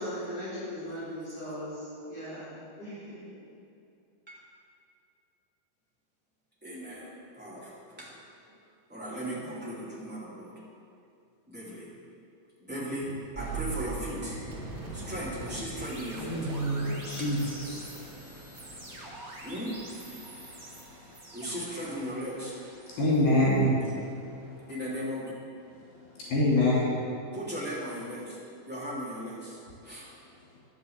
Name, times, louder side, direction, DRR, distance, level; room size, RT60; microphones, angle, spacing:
voice 1, 0.0-3.4, equal, 35° left, -10 dB, 4.0 m, -39 dB
voice 2, 6.6-8.1 8.9-10.5 11.5-11.9 12.6-14.4 14.9-17.3 19.4-19.8 21.3-22.6 24.7-25.3 27.3-30.1, equal, 5° right, -8 dB, 1.5 m, -37 dB
sound 1, 13.3-24.4, right 3 dB, 75° right, 0.6 m, -42 dB
voice 3, 16.2-17.9 18.2-18.3 22.9-23.9 26.2-27.0, left 1 dB, 60° left, -6 dB, 4.1 m, -26 dB
11.0 x 7.5 x 8.0 m, 2.5 s
omnidirectional pair, 5.3 m